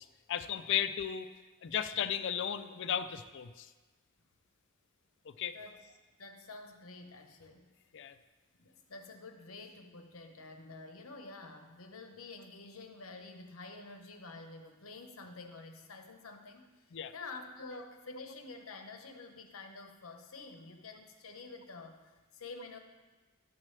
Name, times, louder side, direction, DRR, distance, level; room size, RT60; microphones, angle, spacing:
voice 1, 0.0-1.3 1.6-3.7 5.3-5.6 7.9-8.1 16.9-17.1, left 9 dB, 60° left, 12 dB, 0.4 m, -35 dB
voice 2, 5.5-5.9 6.2-7.7 8.6-22.8, left 3 dB, 85° left, 5 dB, 1.0 m, -49 dB
11.5 x 7.4 x 3.3 m, 1.2 s
head